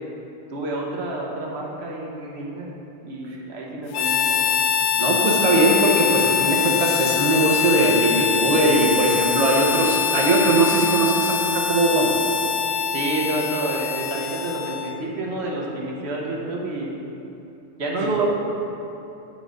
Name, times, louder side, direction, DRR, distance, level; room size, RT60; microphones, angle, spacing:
voice 1, 0.5-2.7 3.0-4.6 12.9-16.9 17.8-18.3, right 2 dB, 70° right, -2 dB, 1.1 m, -29 dB
Harmonica, 3.9-15.0, left 7 dB, 90° left, 0.9 m, -23 dB
voice 2, 5.0-12.1, right 2 dB, 35° right, -2 dB, 0.9 m, -20 dB
7.3 x 4.0 x 6.1 m, 2.8 s
omnidirectional pair, 1.2 m